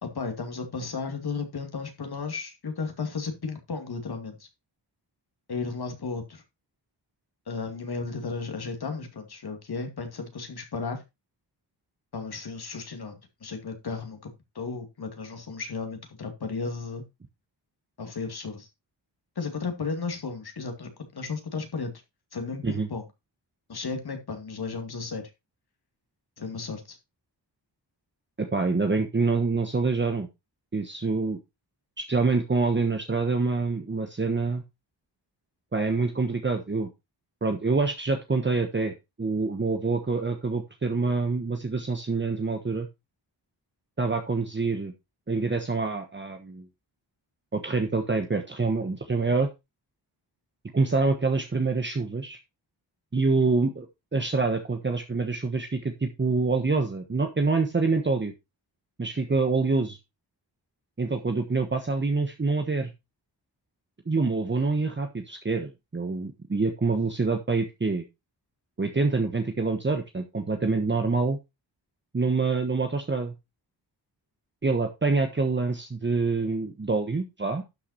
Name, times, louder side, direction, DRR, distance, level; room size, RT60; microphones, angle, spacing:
voice 1, 0.0-4.5 5.5-6.4 7.5-11.0 12.1-14.3 14.5-17.0 18.0-18.7 19.4-21.9 22.3-23.0 23.7-25.3 26.4-27.0, left 4 dB, 60° left, 5 dB, 2.4 m, -34 dB
voice 2, 28.4-30.3 30.7-31.4 32.0-34.6 35.7-36.9 37.4-42.9 44.0-44.9 45.3-46.7 47.5-49.5 50.7-52.4 53.1-58.3 59.0-60.0 61.0-62.9 64.0-68.1 68.8-71.4 72.1-73.3 74.6-77.6, right 3 dB, 25° right, 5 dB, 1.2 m, -26 dB
12.0 x 5.8 x 4.2 m, 0.24 s
wide cardioid pair, 105°, 43 cm